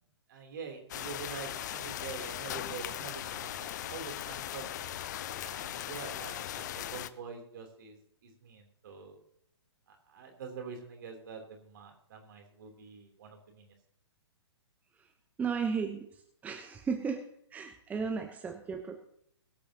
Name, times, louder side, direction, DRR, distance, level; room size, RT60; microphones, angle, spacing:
voice 1, 0.3-5.0 5.4-9.2 10.1-13.7, right 5 dB, 50° right, 3 dB, 3.2 m, -46 dB
sound 1, 0.9-7.1, left 11 dB, 40° left, 0.6 m, -39 dB
voice 2, 15.4-16.0 16.4-17.2 17.5-19.0, right 5 dB, 10° right, 4 dB, 0.9 m, -34 dB
22.0 x 8.6 x 2.9 m, 0.72 s
figure-of-eight pair, 120°, 14 cm